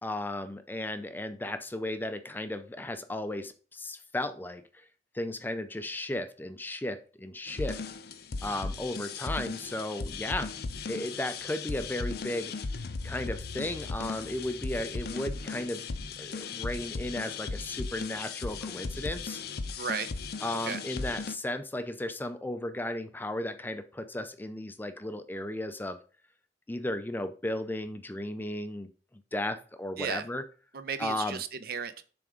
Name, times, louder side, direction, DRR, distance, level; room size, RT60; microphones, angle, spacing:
voice 1, 0.0-4.6 5.1-7.8 8.4-10.5 10.9-12.5 13.0-15.9 16.2-19.4 20.4-26.0 26.7-28.9 29.3-30.4 31.0-31.4, left 1 dB, 10° left, 10 dB, 0.4 m, -35 dB
sound 1, 7.5-21.3, left 4 dB, 60° left, 0.6 m, -37 dB
voice 2, 19.8-20.1 20.6-20.8 30.0-30.3 30.7-32.0, right 6 dB, 55° right, 11 dB, 0.7 m, -34 dB
7.2 x 3.5 x 4.9 m, 0.38 s
head